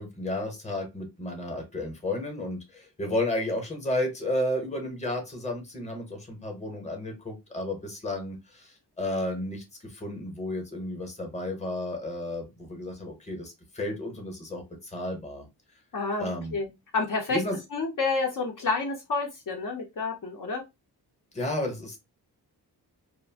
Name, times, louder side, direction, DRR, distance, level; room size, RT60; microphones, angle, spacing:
voice 1, 0.0-15.5 16.2-16.5 17.3-17.6 21.3-22.0, left 1 dB, 20° left, 3 dB, 0.8 m, -32 dB
voice 2, 15.9-16.7 16.9-17.4 17.7-20.6, left 4 dB, 55° left, 1 dB, 0.7 m, -29 dB
2.4 x 2.1 x 3.3 m, 0.23 s
wide cardioid pair, 150°, 39 cm